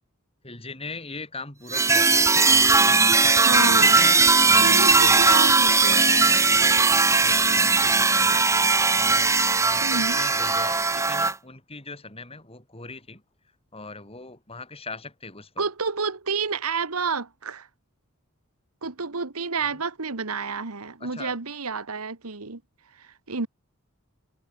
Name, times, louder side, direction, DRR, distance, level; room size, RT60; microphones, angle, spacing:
voice 1, 0.4-5.2 6.1-13.2 13.7-15.6 19.6-19.8 21.0-21.4, left 3 dB, 25° left, 5.8 m, -40 dB
sound 1, 1.7-11.3, right 4 dB, 15° right, 0.8 m, -19 dB
voice 2, 3.4-4.0 4.6-6.2 9.8-10.2 15.6-17.7 18.8-22.6 22.9-23.5, right 4 dB, 80° right, 1.6 m, -29 dB
head